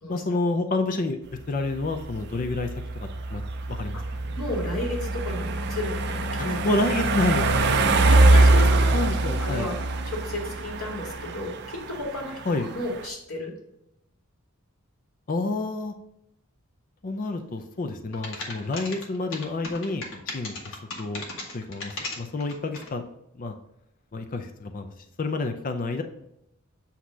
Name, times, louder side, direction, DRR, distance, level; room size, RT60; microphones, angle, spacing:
voice 1, 0.1-1.2 1.5-3.4 3.7-4.0 4.3-4.4 6.4-7.8 8.9-9.7 12.5-12.7 15.3-15.9 17.0-21.2 21.5-23.0 23.4-23.5 24.1-24.9 25.2-26.0, left 2 dB, 40° left, 6 dB, 0.5 m, -29 dB
sound 1, 1.3-13.1, right 2 dB, 50° right, 0.6 m, -23 dB
voice 2, 4.4-6.6 8.0-9.7 10.1-13.5, left 1 dB, 85° left, -2 dB, 2.3 m, -33 dB
sound 2, 18.1-22.9, left 3 dB, 60° left, 1.5 m, -36 dB
8.1 x 2.9 x 6.1 m, 0.82 s
head